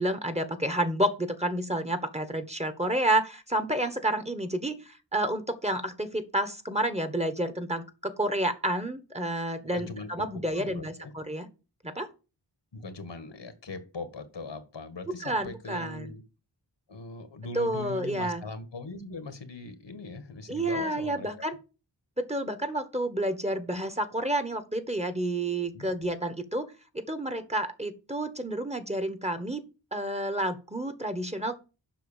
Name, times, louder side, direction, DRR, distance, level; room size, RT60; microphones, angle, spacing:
voice 1, 0.0-11.5 11.8-12.1 15.1-16.1 17.5-18.4 20.5-21.6 22.2-26.7 26.9-29.6 29.9-31.6, right 1 dB, 15° right, 1.4 m, -30 dB
voice 2, 9.7-10.1 10.3-11.1 12.7-16.2 16.9-21.6 25.7-25.9, left 3 dB, 80° left, 1.7 m, -40 dB
7.7 x 5.9 x 7.3 m
wide cardioid pair, 55°, 43 cm